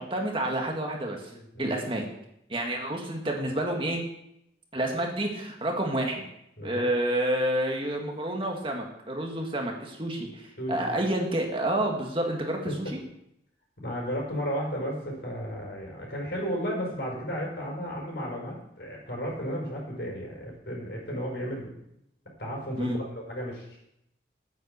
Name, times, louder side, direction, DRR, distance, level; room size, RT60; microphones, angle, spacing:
voice 1, 0.0-1.3 1.6-2.0 2.5-4.0 4.7-6.2 6.6-12.9 22.8-23.0, right 1 dB, 30° right, 1 dB, 1.8 m, -29 dB
voice 2, 1.3-1.8 6.6-6.9 10.6-10.9 12.6-12.9 13.8-21.7 22.4-23.8, equal, 65° left, -2 dB, 5.2 m, -34 dB
10.0 x 9.3 x 6.8 m, 0.79 s
head